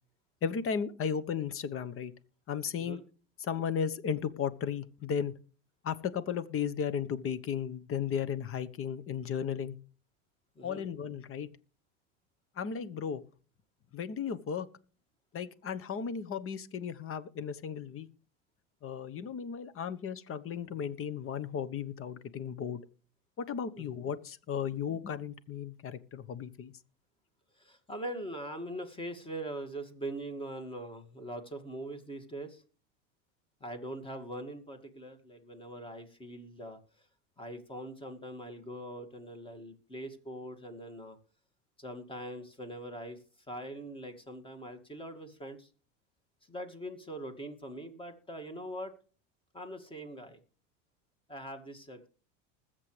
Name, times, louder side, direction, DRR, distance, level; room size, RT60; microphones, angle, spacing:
voice 1, 0.4-2.1 2.5-3.0 3.4-5.3 5.8-9.7 10.6-11.5 12.6-13.2 13.9-14.7 15.3-18.1 18.8-22.8 23.4-26.7, left 7 dB, 35° left, 15 dB, 1.1 m, -35 dB
voice 2, 10.6-10.9 23.8-23.9 27.6-32.6 33.6-36.8 37.4-41.2 41.8-43.2 43.5-45.7 46.5-48.9 49.5-50.4 51.3-52.1, right 1 dB, 15° left, 8 dB, 2.2 m, -42 dB
20.5 x 7.7 x 3.3 m, 0.39 s
supercardioid pair, 110°, 38 cm